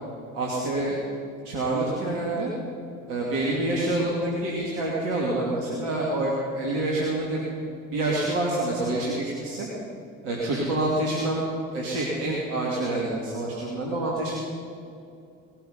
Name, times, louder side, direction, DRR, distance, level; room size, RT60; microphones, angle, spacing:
voice 1, 0.3-1.0 1.4-2.5 3.1-7.4 7.9-9.7 10.2-11.5 11.7-14.4, right 2 dB, 60° right, -4 dB, 2.8 m, -27 dB
19.0 x 13.5 x 5.3 m, 2.6 s
figure-of-eight pair, 60°, 40 cm